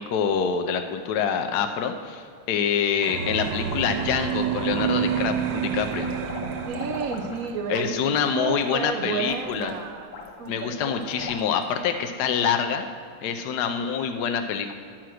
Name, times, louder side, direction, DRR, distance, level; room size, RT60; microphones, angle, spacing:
voice 1, 0.0-6.1 7.7-9.7 10.5-12.9 13.2-14.7, left 7 dB, 70° left, 6 dB, 1.1 m, -26 dB
sound 1, 3.0-7.7, right 8 dB, 80° right, 1.3 m, -28 dB
sound 2, 3.9-4.7 5.1-11.8, left 5 dB, 90° left, 1.9 m, -41 dB
voice 2, 6.7-10.1 10.4-11.3, right 6 dB, 55° right, 5 dB, 1.1 m, -32 dB
10.5 x 5.9 x 6.3 m, 2.3 s
omnidirectional pair, 2.1 m